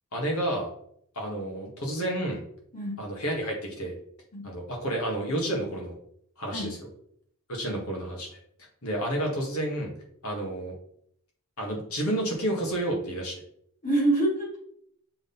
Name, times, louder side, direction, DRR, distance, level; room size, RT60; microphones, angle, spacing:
voice 1, 0.1-0.7 1.2-2.4 3.0-3.9 4.4-6.0 6.4-6.8 7.5-8.4 8.8-9.9 10.2-10.8 11.6-13.4, right 1 dB, 75° left, 0 dB, 2.0 m, -30 dB
voice 2, 2.7-3.0 4.3-4.4 6.5-6.8 13.8-14.6, right 2 dB, 35° left, -3 dB, 2.4 m, -26 dB
6.9 x 3.8 x 4.1 m, 0.67 s
head